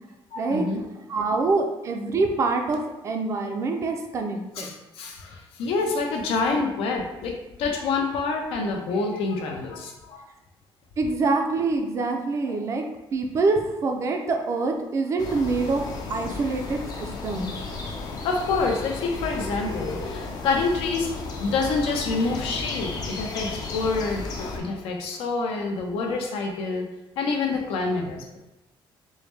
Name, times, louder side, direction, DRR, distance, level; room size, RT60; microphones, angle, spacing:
voice 1, 0.3-0.8 4.6-10.2 12.5-12.6 16.2-16.4 18.2-21.1 21.4-26.8 27.2-28.4, left 3 dB, 80° left, 1 dB, 0.7 m, -27 dB
voice 2, 1.1-4.7 11.0-12.8 13.1-15.8 16.1-17.5, right 3 dB, 30° right, 3 dB, 0.4 m, -25 dB
sound 1, 15.2-24.6, left 3 dB, 45° left, 0.5 m, -34 dB
4.7 x 2.1 x 3.2 m, 0.98 s
cardioid pair, 175°, 9 cm